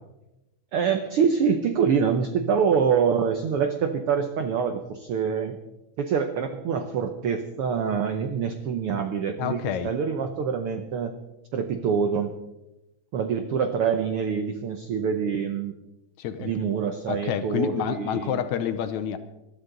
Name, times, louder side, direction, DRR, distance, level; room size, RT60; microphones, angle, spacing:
voice 1, 0.7-5.6 6.0-11.1 11.5-12.3 13.1-15.7 16.4-18.4, right 6 dB, 80° right, 7 dB, 1.2 m, -25 dB
voice 2, 9.4-9.9 16.2-16.7 17.1-19.2, left 9 dB, 75° left, 9 dB, 2.0 m, -28 dB
20.5 x 13.0 x 3.9 m, 0.98 s
omnidirectional pair, 3.7 m